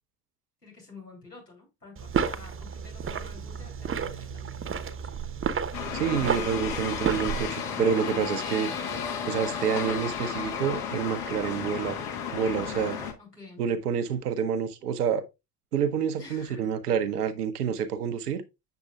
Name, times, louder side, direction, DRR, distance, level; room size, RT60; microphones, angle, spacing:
voice 1, 0.6-5.0 13.2-13.6 16.2-16.7, left 3 dB, 90° left, 3.3 m, -50 dB
sound 1, 2.0-7.5, right 7 dB, 25° right, 0.9 m, -31 dB
sound 2, 5.7-13.1, left 7 dB, 65° left, 1.9 m, -33 dB
voice 2, 5.9-8.7 9.3-12.0 12.3-13.0 13.6-15.2 15.7-18.4, right 7 dB, 75° right, 0.9 m, -28 dB
8.0 x 6.9 x 2.3 m
figure-of-eight pair, 55°, 47 cm